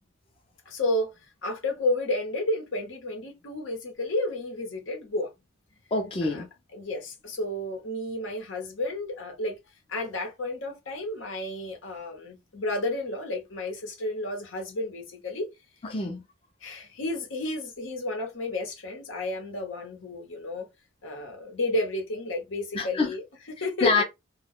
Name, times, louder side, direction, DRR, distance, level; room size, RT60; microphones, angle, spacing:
voice 1, 0.7-1.1 1.4-5.3 6.2-6.4 6.7-9.6 9.9-15.5 16.6-20.7 21.0-24.0, left 1 dB, 80° left, 1.0 m, -31 dB
voice 2, 5.9-6.5 15.8-16.2 22.7-23.1 23.6-24.0, left 3 dB, 30° left, 0.5 m, -26 dB
2.2 x 2.2 x 3.5 m
head